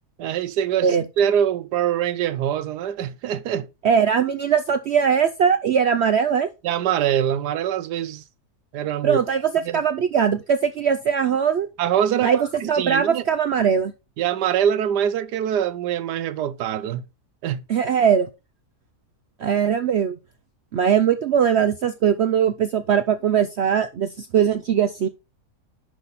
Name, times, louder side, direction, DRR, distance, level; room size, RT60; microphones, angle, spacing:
voice 1, 0.2-3.7 6.6-8.2 8.7-9.2 9.6-9.8 11.8-13.2 14.2-17.0 17.4-17.6, right 9 dB, 90° right, 1.3 m, -24 dB
voice 2, 3.8-6.5 9.0-11.7 12.2-12.4 12.7-13.9 17.7-18.3 19.4-20.2 20.7-25.1, right 7 dB, 70° right, 0.6 m, -20 dB
10.5 x 4.1 x 4.1 m
omnidirectional pair, 1.7 m